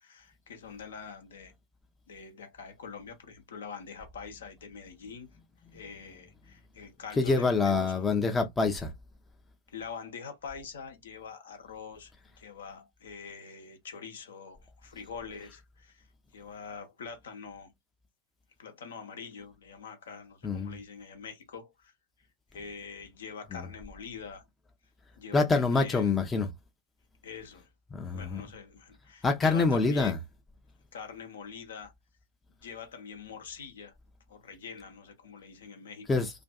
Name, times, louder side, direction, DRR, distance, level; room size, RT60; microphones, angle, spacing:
voice 1, 0.0-1.5 2.1-5.3 5.7-8.1 9.7-16.1 16.3-17.7 18.6-21.9 22.5-24.4 25.2-26.1 27.2-27.7 28.1-30.2 30.9-31.9 32.6-33.9 34.3-36.2, left 6 dB, 65° left, 0.7 m, -44 dB
voice 2, 7.2-8.9 20.4-20.7 23.5-23.6 25.3-26.5 27.9-28.4 29.2-30.2 36.1-36.3, left 4 dB, 15° left, 0.5 m, -26 dB
2.5 x 2.3 x 2.2 m
figure-of-eight pair, 90°, 0 cm